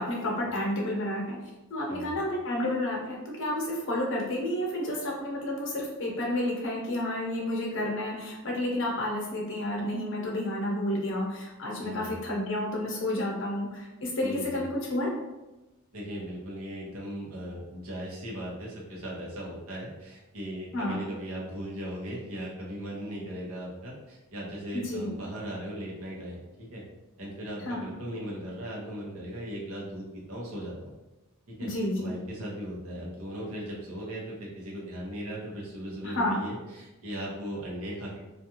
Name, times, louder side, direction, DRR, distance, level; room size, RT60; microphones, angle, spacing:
voice 1, 0.0-1.4 1.7-15.2 20.7-21.0 24.7-25.1 27.6-27.8 31.6-32.1 36.0-36.4, left 1 dB, 60° left, -1 dB, 0.7 m, -30 dB
voice 2, 1.9-2.2 11.8-12.2 14.2-14.7 15.9-26.8 27.2-30.9 31.5-31.7 32.0-38.2, equal, 70° right, -4 dB, 0.9 m, -38 dB
2.4 x 2.4 x 2.8 m, 1.0 s
head